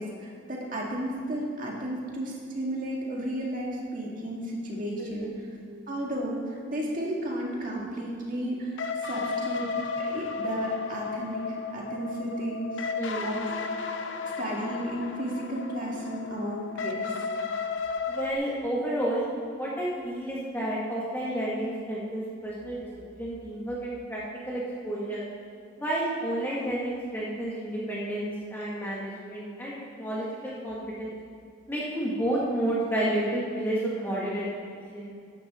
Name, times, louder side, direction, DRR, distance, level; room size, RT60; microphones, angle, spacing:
voice 1, 0.0-5.6 5.9-9.7 10.0-12.9 13.2-13.6 14.2-17.1, right 1 dB, 40° right, -2 dB, 2.2 m, -33 dB
voice 2, 5.0-5.3 13.0-13.3 18.1-19.2 19.6-22.8 23.2-25.2 25.8-31.1 31.7-35.1, right 1 dB, 10° left, -7 dB, 2.1 m, -31 dB
sound 1, 8.8-18.3, left 4 dB, 70° left, 0.8 m, -33 dB
14.5 x 11.0 x 3.8 m, 2.3 s
head